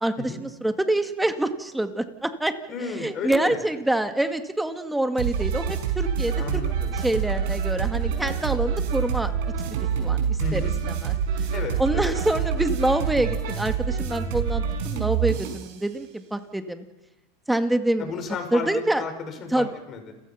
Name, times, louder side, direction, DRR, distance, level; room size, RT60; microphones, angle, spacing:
voice 1, 0.0-2.5 3.0-6.6 6.9-9.3 10.0-10.6 11.0-11.1 11.8-16.9 17.5-18.1 18.5-19.0 19.5-19.7, right 1 dB, 5° right, 8 dB, 2.0 m, -26 dB
voice 2, 2.7-3.6 6.4-6.9 10.4-10.8 11.5-12.2 18.0-18.7 19.0-20.1, left 6 dB, 35° left, 6 dB, 5.3 m, -33 dB
sound 1, 5.2-15.8, right 7 dB, 70° right, 5.7 m, -26 dB
30.0 x 15.5 x 5.8 m, 0.94 s
hypercardioid pair, 110°, 0 cm